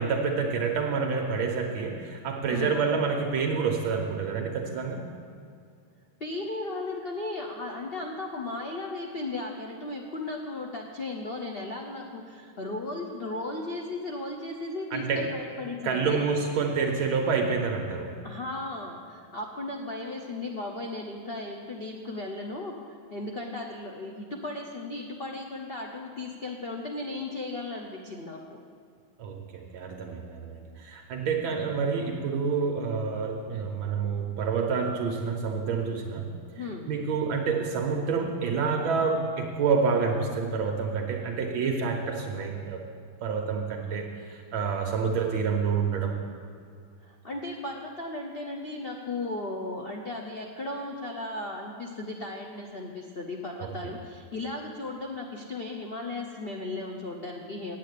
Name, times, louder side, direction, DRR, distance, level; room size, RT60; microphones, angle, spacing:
voice 1, 0.0-5.0 14.9-15.3 15.8-18.1 29.2-36.3 36.9-42.8 43.2-46.1 53.6-53.7, right 5 dB, 75° right, 2 dB, 1.6 m, -28 dB
voice 2, 2.5-2.8 6.2-16.2 18.2-28.6 36.6-36.9 47.0-57.8, left 2 dB, 85° left, 1 dB, 0.5 m, -36 dB
8.4 x 8.2 x 8.3 m, 2.3 s
omnidirectional pair, 2.3 m